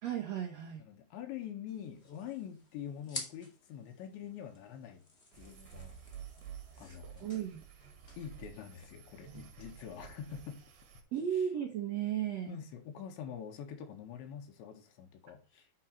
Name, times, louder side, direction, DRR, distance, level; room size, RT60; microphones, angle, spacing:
voice 1, 0.0-0.8 6.8-7.6 11.1-12.6, right 9 dB, 80° right, 1.5 m, -35 dB
voice 2, 0.8-5.0 5.4-6.0 6.8-7.3 8.2-10.7 12.5-15.7, left 9 dB, 85° left, 3.9 m, -45 dB
sound 1, 1.7-9.3, left 2 dB, 30° left, 1.2 m, -51 dB
sound 2, 5.3-11.0, right 9 dB, 65° right, 3.5 m, -51 dB
8.5 x 6.0 x 4.2 m
omnidirectional pair, 5.1 m